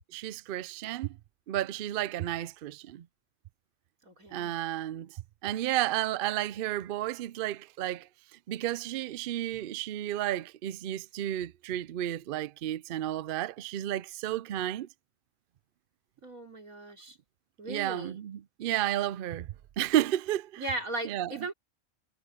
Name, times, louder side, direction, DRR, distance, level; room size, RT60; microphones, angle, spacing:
voice 1, 0.1-1.1 1.5-3.1 4.3-5.1 5.4-8.1 8.5-14.9 17.7-19.5 19.8-20.6 21.0-21.3, right 13 dB, 65° right, 0.5 m, -32 dB
voice 2, 4.0-4.6 16.2-17.2 17.6-18.2 20.6-21.5, right 2 dB, 90° right, 4.3 m, -37 dB
omnidirectional pair, 1.4 m